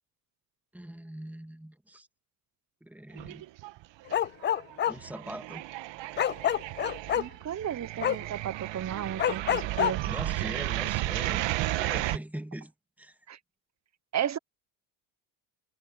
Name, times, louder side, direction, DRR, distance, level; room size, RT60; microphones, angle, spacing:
voice 1, 0.7-2.1 2.8-3.4 4.9-5.6 10.1-11.4 11.8-12.7 13.0-13.2, right 1 dB, 5° right, 2.7 m, -41 dB
sound 1, 3.2-3.8 4.1-12.2, right 16 dB, 65° right, 1.4 m, -33 dB
Bark, 4.1-4.9 6.2-7.2 8.0-8.2 9.2-9.9, left 10 dB, 25° left, 0.4 m, -26 dB
voice 2, 7.2-10.0 13.3-13.4 14.1-14.4, right 10 dB, 35° right, 1.1 m, -34 dB
supercardioid pair, 75°, 48 cm